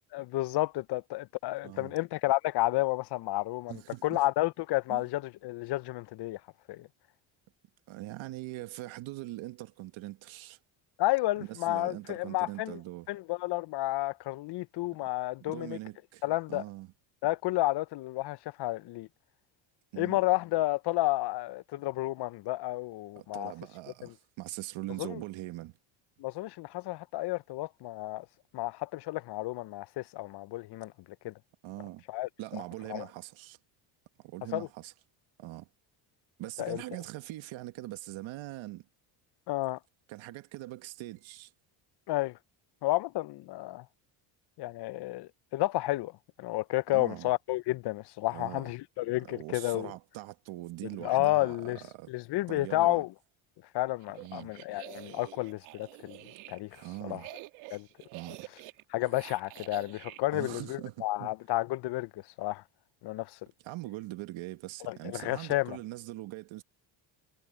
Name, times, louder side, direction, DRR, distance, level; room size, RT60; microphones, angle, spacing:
voice 1, 0.1-6.4 6.7-6.9 11.0-12.8 13.1-15.8 16.2-16.6 17.2-19.1 20.0-23.5 24.0-24.1 25.0-25.2 26.2-28.3 28.5-30.9 31.2-31.3 32.1-32.6 32.9-33.0 34.5-34.7 36.6-36.8 39.5-39.8 42.1-42.4 42.8-43.9 44.6-46.1 46.4-49.9 51.0-51.8 52.1-53.1 53.7-56.2 56.5-56.7 57.0-57.2 57.7-57.9 58.9-62.6 63.0-63.4 64.9-65.8, left 18 dB, 55° left, 0.6 m, -31 dB
voice 2, 1.6-1.9 3.7-4.2 4.9-5.0 7.9-10.6 11.4-13.1 15.4-16.2 16.5-16.9 19.9-20.2 23.2-25.8 31.6-32.0 32.4-33.6 34.2-34.9 35.4-35.7 36.4-38.8 40.1-41.5 46.9-47.3 48.3-48.7 49.2-52.1 52.5-53.0 54.2-54.5 56.8-57.3 58.1-58.5 60.3-61.3 63.6-66.6, right 17 dB, 70° right, 1.6 m, -42 dB
sound 1, 54.0-60.2, right 21 dB, 90° right, 1.7 m, -48 dB
cardioid pair, 100°, 49 cm